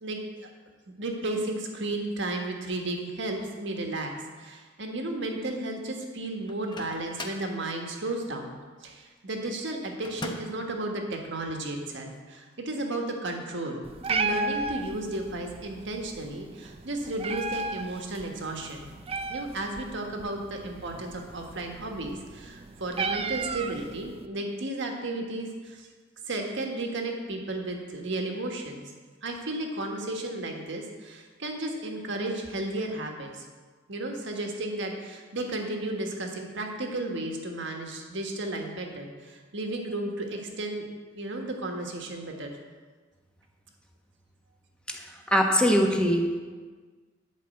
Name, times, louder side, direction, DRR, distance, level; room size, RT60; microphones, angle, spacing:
voice 1, 0.0-0.5 1.0-4.1 4.4-18.9 19.3-25.9 26.2-28.8 29.2-33.4 33.9-40.8 41.1-42.5, right 2 dB, 65° right, 2 dB, 1.5 m, -33 dB
Microwave oven, 6.5-7.5 10.0-10.7, left 2 dB, 25° left, 0.9 m, -39 dB
Meow, 13.8-24.3, right 3 dB, 30° right, 0.5 m, -35 dB
voice 2, 44.9-46.2, equal, 5° left, 1 dB, 1.2 m, -23 dB
11.0 x 5.4 x 7.7 m, 1.5 s
head